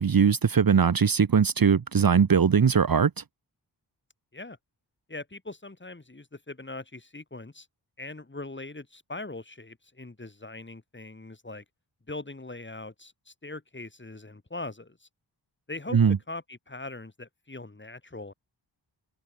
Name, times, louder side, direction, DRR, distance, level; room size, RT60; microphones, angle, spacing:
voice 1, 0.0-3.2 15.9-16.2, right 6 dB, 50° right, 1.3 m, -21 dB
voice 2, 5.1-7.7 8.0-11.6 12.1-15.1 15.7-16.0 16.3-18.3, left 2 dB, 25° left, 6.6 m, -41 dB
wide cardioid pair, 95°, 44 cm